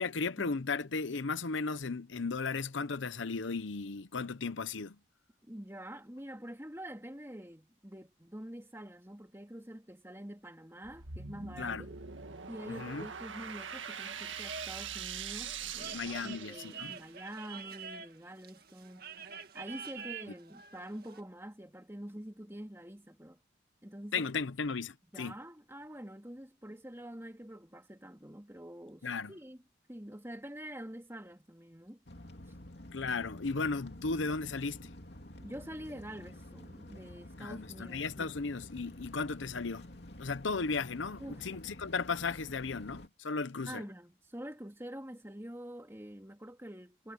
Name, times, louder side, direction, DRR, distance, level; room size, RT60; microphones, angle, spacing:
voice 1, 0.0-5.0 11.6-11.8 12.7-13.1 15.9-16.9 24.1-25.3 29.0-29.3 32.9-34.9 37.4-39.8 40.2-43.8, left 4 dB, 75° left, 0.8 m, -35 dB
voice 2, 5.4-11.9 12.5-19.1 19.5-23.4 23.8-24.3 25.1-29.6 29.9-32.0 35.4-38.3 41.2-41.5 43.7-47.1, right 1 dB, 15° right, 2.8 m, -46 dB
sound 1, 10.8-17.1, right 7 dB, 80° right, 1.8 m, -43 dB
sound 2, 13.6-21.2, right 6 dB, 50° right, 2.1 m, -48 dB
sound 3, 32.1-43.1, left 1 dB, 55° left, 3.0 m, -50 dB
head